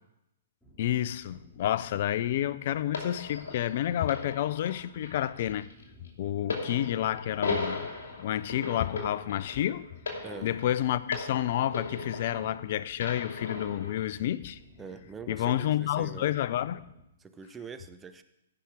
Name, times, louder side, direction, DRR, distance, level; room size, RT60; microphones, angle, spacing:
sound 1, 0.6-17.0, left 1 dB, 10° left, 2.5 m, -56 dB
voice 1, 0.8-5.7 6.2-7.9 8.2-9.8 10.4-14.6 15.3-16.8, left 12 dB, 50° left, 0.5 m, -29 dB
sound 2, 2.9-12.6 13.0-14.0 14.8-14.9, left 3 dB, 65° left, 2.6 m, -37 dB
voice 2, 14.8-16.3 17.2-18.2, right 5 dB, 15° right, 0.7 m, -44 dB
15.5 x 5.9 x 5.0 m
hypercardioid pair, 125°, 0 cm